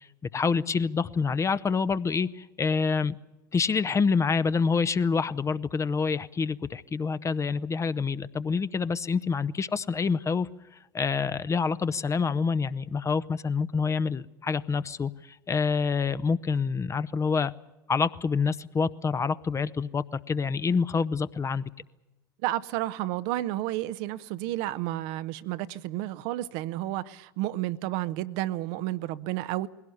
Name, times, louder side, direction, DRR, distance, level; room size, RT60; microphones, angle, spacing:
voice 1, 0.3-3.2 3.5-10.5 10.9-15.1 15.5-17.5 17.9-21.7, left 5 dB, 25° left, 15 dB, 0.8 m, -27 dB
voice 2, 22.4-29.7, right 15 dB, 60° right, 14 dB, 0.8 m, -31 dB
21.0 x 17.0 x 9.8 m, 1.0 s
figure-of-eight pair, 70°, 12 cm